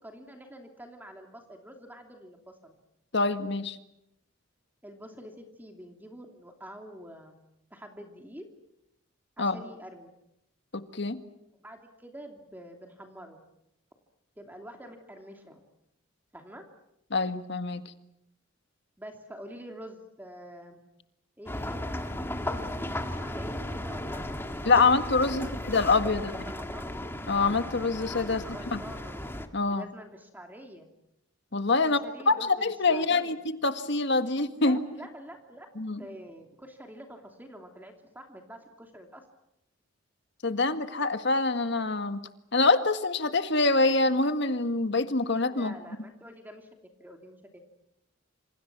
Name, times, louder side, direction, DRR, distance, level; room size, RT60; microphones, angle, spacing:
voice 1, 0.0-2.7 4.8-7.4 7.7-8.5 9.4-10.1 11.6-13.4 14.4-15.6 16.3-16.6 19.0-20.8 21.4-22.7 23.1-24.8 25.2-25.8 26.3-26.9 28.3-29.2 29.6-30.9 31.8-33.4 34.5-35.7 36.0-39.2 45.5-47.6, equal, 10° right, 4 dB, 2.8 m, -46 dB
voice 2, 3.1-3.8 9.4-9.6 10.7-11.2 17.1-17.8 24.6-26.3 27.3-28.4 28.7-28.8 29.5-29.9 31.5-32.0 32.3-33.4 33.6-34.8 35.7-36.0 40.4-42.2 42.5-45.7, left 3 dB, 60° left, 9 dB, 1.8 m, -25 dB
sound 1, 21.5-29.5, left 1 dB, 10° left, 1.9 m, -35 dB
28.0 x 27.5 x 6.1 m, 0.82 s
head